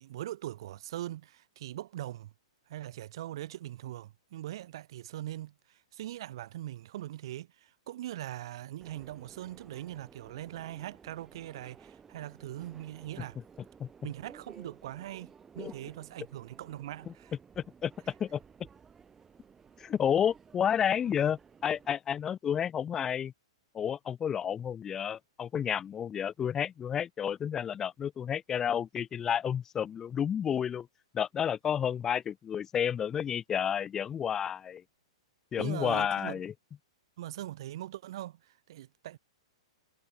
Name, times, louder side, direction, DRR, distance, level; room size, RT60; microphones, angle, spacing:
voice 1, 0.0-2.3 2.7-13.4 14.0-17.3 35.6-36.4 37.2-39.2, right 13 dB, 55° right, 1.0 m, -41 dB
Subway metro underground, 8.8-21.9, right 6 dB, 10° right, 1.6 m, -55 dB
voice 2, 17.6-17.9 18.2-18.4 19.8-23.3 23.7-30.9 31.1-34.8 35.5-36.5, left 8 dB, 15° left, 0.9 m, -31 dB
hypercardioid pair, 160°, 3 cm